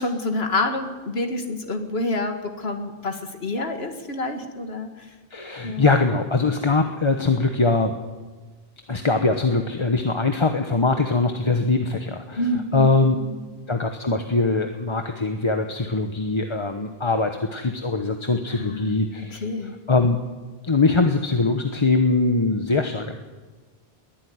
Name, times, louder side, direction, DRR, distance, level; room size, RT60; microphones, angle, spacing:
voice 1, 0.0-4.9 5.6-5.8 12.4-12.9 13.1-13.4 18.5-18.9 19.3-19.7, left 2 dB, 70° left, 5 dB, 2.2 m, -27 dB
voice 2, 5.3-8.0 8.9-12.4 12.7-13.2 13.7-20.2 20.6-23.2, left 3 dB, 30° left, 6 dB, 1.1 m, -22 dB
21.5 x 13.0 x 9.6 m, 1.3 s
omnidirectional pair, 1.1 m